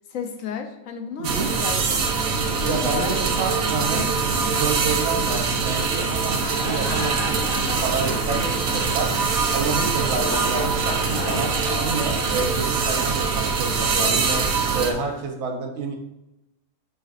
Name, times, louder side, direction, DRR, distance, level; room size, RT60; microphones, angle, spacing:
voice 1, 0.1-1.3 1.6-3.1 3.9-4.2, left 6 dB, 70° left, 5 dB, 1.2 m, -33 dB
sound 1, 1.2-14.9, right 5 dB, 90° right, 1.2 m, -23 dB
voice 2, 2.7-4.1 4.5-9.1 9.5-11.5 11.8-16.0, right 4 dB, 55° right, 2 dB, 1.1 m, -29 dB
sound 2, 3.1-11.7, left 4 dB, 50° left, 1.2 m, -38 dB
sound 3, 6.1-15.2, left 1 dB, 25° left, 1.6 m, -36 dB
7.5 x 5.0 x 2.6 m, 0.90 s
omnidirectional pair, 1.5 m